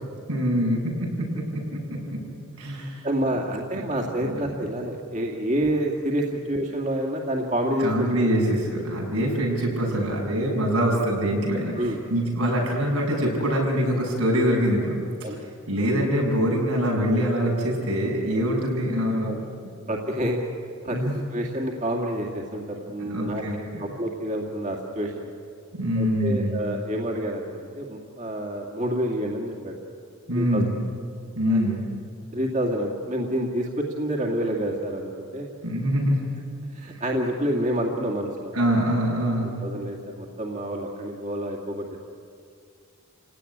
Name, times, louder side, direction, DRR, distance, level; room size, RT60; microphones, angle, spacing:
voice 1, 0.3-1.1 1.3-2.2 2.6-3.1 3.7-3.8 4.2-4.3 7.8-15.0 15.7-19.3 20.9-21.1 23.0-23.9 25.7-26.6 30.3-30.7 31.4-31.8 35.6-36.2 36.9-37.0 38.5-39.5, equal, 90° right, -1 dB, 7.6 m, -24 dB
voice 2, 2.6-8.3 9.8-10.0 11.8-12.0 15.2-15.4 18.3-18.5 19.2-19.4 19.9-20.4 20.8-23.4 23.8-25.3 25.9-29.8 30.3-30.6 31.5-31.8 32.3-35.5 36.7-38.5 39.6-41.8, right 1 dB, 35° right, 0 dB, 2.2 m, -28 dB
29.5 x 17.5 x 10.0 m, 2.3 s
head